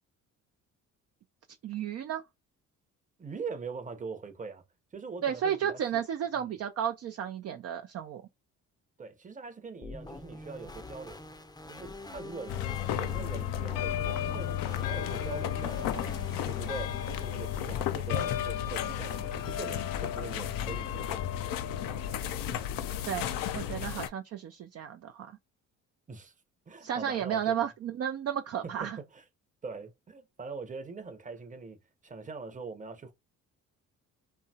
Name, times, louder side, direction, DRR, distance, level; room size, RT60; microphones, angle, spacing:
voice 1, 1.6-2.2 5.2-8.2 23.1-25.4 26.8-29.0, right 9 dB, 45° right, 0.4 m, -33 dB
voice 2, 3.2-4.6 4.9-6.0 6.3-6.5 9.0-11.2 11.7-12.6 12.9-21.5 26.1-26.3 26.7-27.7 28.6-29.2 29.6-33.1, right 4 dB, 20° right, 0.8 m, -42 dB
sound 1, 9.8-17.8, left 2 dB, 10° left, 0.6 m, -45 dB
sound 2, 12.5-24.1, left 10 dB, 70° left, 0.5 m, -33 dB
2.8 x 2.2 x 2.7 m
supercardioid pair, 70°, 35 cm